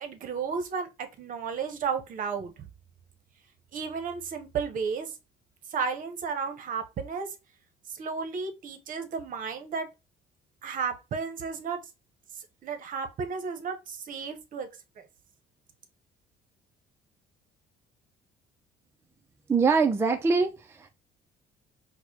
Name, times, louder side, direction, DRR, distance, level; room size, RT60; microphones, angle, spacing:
voice 1, 0.0-2.7 3.7-5.1 5.7-7.3 7.9-9.9 10.6-11.8 12.6-14.7 15.0-15.1, right 5 dB, 55° right, 0.8 m, -33 dB
voice 2, 19.5-20.9, right 4 dB, 15° right, 0.4 m, -24 dB
4.6 x 2.1 x 2.7 m
cardioid pair, 110°, 17 cm